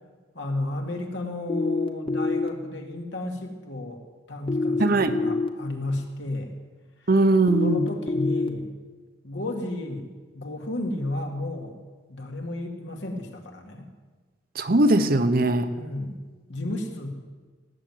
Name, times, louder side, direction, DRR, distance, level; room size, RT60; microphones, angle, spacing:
voice 1, 0.3-4.0 4.3-6.5 7.0-7.1 7.6-8.7 9.2-10.1 10.3-11.8 12.1-13.9 15.7-16.2 16.5-17.1, left 2 dB, 80° left, 2 dB, 2.3 m, -33 dB
sound 1, 1.5-2.5 4.5-5.5 7.5-8.5, left 3 dB, 30° left, 0.9 m, -25 dB
voice 2, 4.8-5.2 7.1-7.9 14.5-15.7, right 2 dB, 55° right, 9 dB, 1.0 m, -20 dB
18.5 x 7.6 x 9.3 m, 1.4 s
head